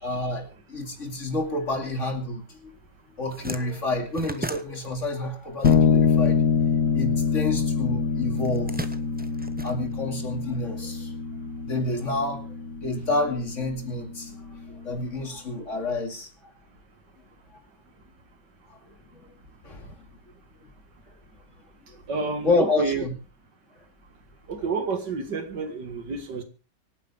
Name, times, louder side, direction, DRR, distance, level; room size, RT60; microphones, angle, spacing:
voice 1, 0.0-2.7 3.2-6.4 6.9-8.8 9.6-11.1 11.6-12.5 12.8-16.3 19.1-19.3 19.6-20.0 21.9-22.0 22.4-23.1, left 2 dB, 45° left, 2.8 m, -29 dB
sound 1, 2.7-2.8 3.1-6.3 6.5-7.7 8.4-10.4, right 1 dB, 15° right, 0.3 m, -37 dB
sound 2, 5.6-15.1, left 6 dB, 65° left, 1.7 m, -25 dB
voice 2, 22.1-23.0 24.5-26.4, right 4 dB, 75° right, 2.5 m, -29 dB
24.5 x 9.4 x 3.6 m
omnidirectional pair, 1.9 m